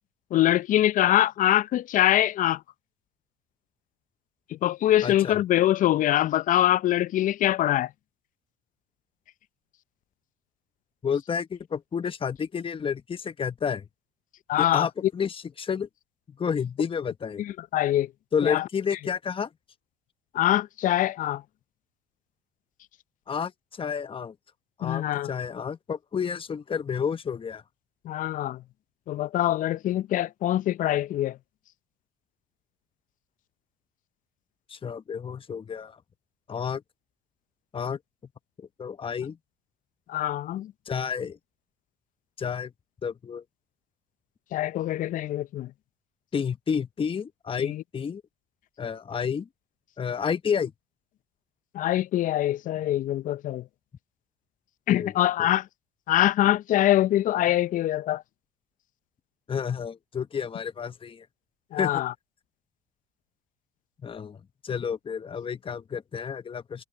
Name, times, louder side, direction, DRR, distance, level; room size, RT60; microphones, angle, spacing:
voice 1, 0.3-2.6 4.5-7.9 14.5-14.9 17.4-18.1 18.4-18.6 20.3-21.4 24.8-25.3 28.1-28.6 29.1-31.4 40.1-40.7 44.5-45.7 47.6-47.8 51.7-53.6 54.9-55.6 56.1-58.2 61.7-62.1, left 13 dB, 55° left, 0.7 m, -24 dB
voice 2, 5.0-5.4 11.0-13.8 14.6-15.9 16.3-17.4 18.3-19.5 23.3-24.3 24.8-27.6 34.7-36.0 36.5-36.8 37.7-38.0 38.6-39.4 40.9-41.4 42.4-42.7 43.0-43.4 46.3-48.2 48.8-49.5 50.0-50.7 55.0-55.1 55.4-55.5 59.5-61.2 61.8-62.0 64.0-66.8, left 6 dB, 30° left, 1.4 m, -30 dB
hypercardioid pair, 65°, 17 cm